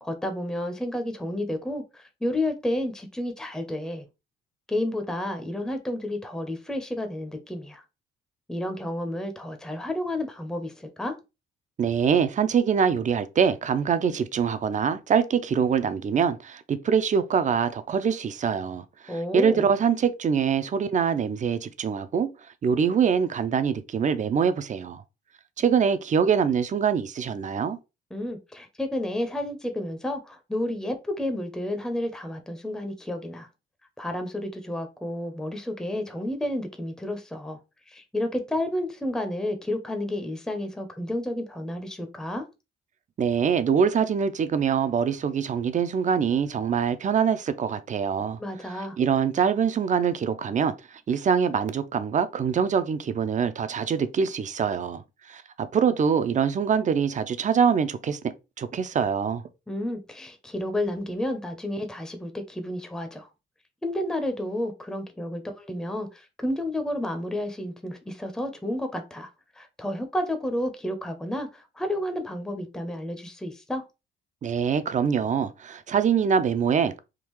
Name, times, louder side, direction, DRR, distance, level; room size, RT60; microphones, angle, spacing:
voice 1, 0.0-4.1 4.7-7.8 8.5-11.2 19.1-19.7 28.1-33.5 34.0-37.6 37.9-42.5 48.4-49.0 59.7-63.3 63.8-69.3 69.5-73.8, left 1 dB, 5° left, 0.6 m, -31 dB
voice 2, 11.8-22.3 22.6-25.0 25.6-27.8 43.2-48.4 48.7-55.0 55.3-55.4 55.7-58.2 58.6-59.4 74.4-77.0, right 7 dB, 40° right, 0.5 m, -24 dB
3.6 x 2.3 x 3.0 m
cardioid pair, 90°, 20 cm